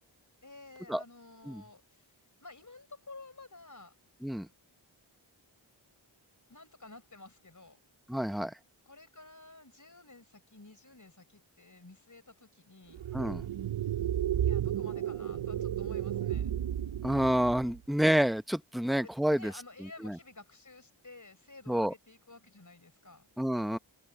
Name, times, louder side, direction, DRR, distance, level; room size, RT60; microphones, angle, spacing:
voice 1, 0.4-3.9 6.5-7.8 8.9-13.0 14.4-16.5 19.0-23.3, left 2 dB, 40° left, 4.7 m, -52 dB
voice 2, 8.1-8.5 13.1-13.4 17.0-19.5 19.8-20.2 21.7-21.9 23.4-23.8, equal, ahead, 1.1 m, -29 dB
sound 1, 12.9-17.8, right 10 dB, 70° right, 0.7 m, -33 dB
wide cardioid pair, 45°, 49 cm